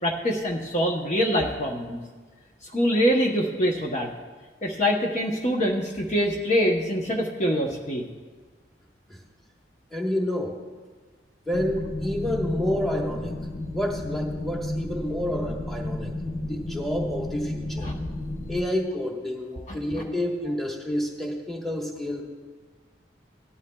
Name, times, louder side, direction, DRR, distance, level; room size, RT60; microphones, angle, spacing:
voice 1, 0.0-2.0 2.7-4.1 4.6-8.1 17.8-17.9 19.7-20.0, equal, 40° left, 0 dB, 0.9 m, -24 dB
voice 2, 9.9-10.6 11.4-13.4 13.7-16.1 16.4-17.9 18.5-22.2, left 1 dB, ahead, -1 dB, 1.3 m, -29 dB
sound 1, 11.5-18.6, left 1 dB, 65° left, 1.7 m, -32 dB
17.0 x 11.5 x 2.3 m, 1.4 s
head